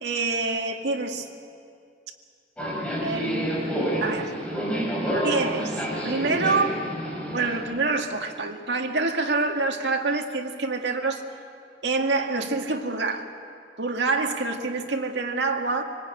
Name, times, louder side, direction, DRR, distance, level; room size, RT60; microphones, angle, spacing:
voice 1, 0.0-1.3 3.0-4.3 5.2-5.8 6.0-6.9 7.3-11.2 11.8-13.3 13.8-15.8, right 3 dB, 70° right, 3 dB, 2.0 m, -26 dB
Subway metro underground, 2.6-7.6, equal, 5° left, 5.3 m, -28 dB
25.5 x 19.0 x 9.0 m, 2.3 s
head